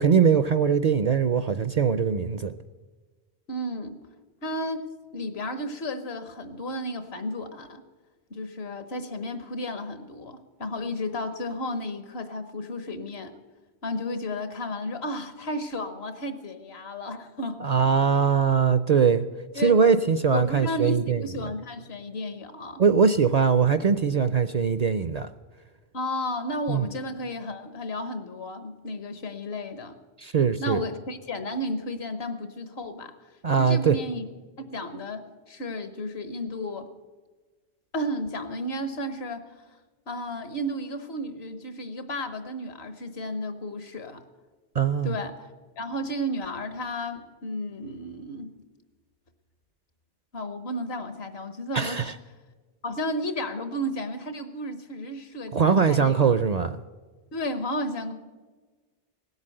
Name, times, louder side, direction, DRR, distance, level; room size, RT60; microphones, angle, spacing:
voice 1, 0.0-2.6 17.6-19.3 19.5-21.2 22.8-25.3 26.7-26.9 30.2-30.8 33.4-34.0 44.7-45.1 51.7-52.1 55.5-56.8, right 6 dB, 55° right, 12 dB, 0.5 m, -21 dB
voice 2, 3.5-4.0 4.4-7.8 8.3-13.3 13.8-17.7 19.5-19.8 20.3-22.8 25.9-30.0 30.6-33.1 33.6-34.2 34.6-36.9 37.9-39.5 40.1-44.2 45.0-45.5 45.8-48.6 50.3-52.1 52.8-56.3 57.3-58.1, left 1 dB, 75° left, 10 dB, 1.4 m, -33 dB
18.0 x 8.2 x 7.7 m, 1.3 s
omnidirectional pair, 1.1 m